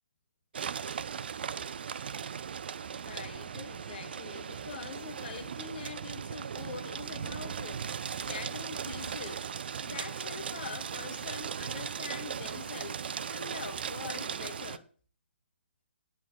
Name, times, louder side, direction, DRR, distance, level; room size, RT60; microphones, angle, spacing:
sound 1, 0.5-14.8, right 7 dB, 55° right, 0.9 m, -38 dB
voice 1, 2.9-9.5 9.8-13.0 13.3-14.9, left 6 dB, 45° left, 1.6 m, -44 dB
11.0 x 8.8 x 8.4 m
figure-of-eight pair, 135°, 7 cm